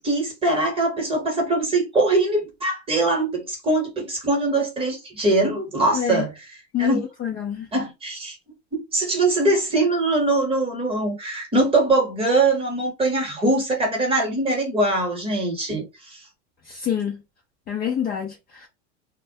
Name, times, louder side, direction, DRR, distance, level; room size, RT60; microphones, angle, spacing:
voice 1, 0.0-7.0 7.7-8.4 8.9-16.2, right 2 dB, 15° right, 0.9 m, -22 dB
voice 2, 5.9-6.2 6.7-7.7 16.7-17.2 17.7-18.7, left 9 dB, 25° left, 0.5 m, -27 dB
2.1 x 2.1 x 2.7 m
supercardioid pair, 120°, 38 cm